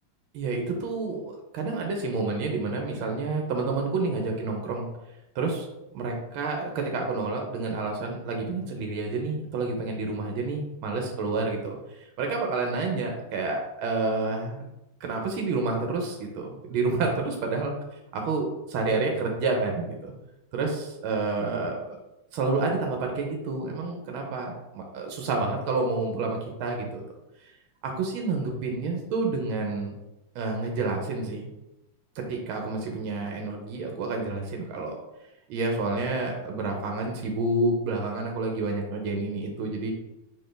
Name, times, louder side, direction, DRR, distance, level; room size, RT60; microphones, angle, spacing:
voice 1, 0.3-4.9 5.3-5.7 5.9-14.6 15.0-17.7 18.3-20.1 20.5-22.0 22.3-27.0 27.4-27.5 27.8-29.9 30.3-31.5 32.1-34.9 35.5-39.9, right 3 dB, 85° right, 2 dB, 1.5 m, -29 dB
4.3 x 3.7 x 3.3 m, 0.94 s
omnidirectional pair, 2.2 m